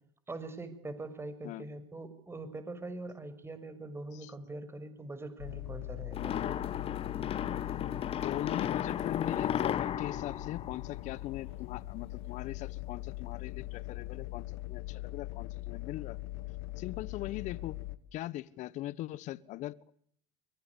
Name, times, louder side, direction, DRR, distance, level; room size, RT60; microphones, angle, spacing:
voice 1, 0.3-6.4, right 2 dB, 15° right, 6.2 m, -43 dB
sound 1, 5.4-18.0, left 17 dB, 75° left, 1.9 m, -41 dB
sound 2, 6.1-11.5, left 9 dB, 40° left, 1.6 m, -34 dB
voice 2, 8.1-16.2 16.8-17.8 18.1-19.9, left 15 dB, 55° left, 1.3 m, -40 dB
24.0 x 22.0 x 8.4 m
supercardioid pair, 95°, 15 cm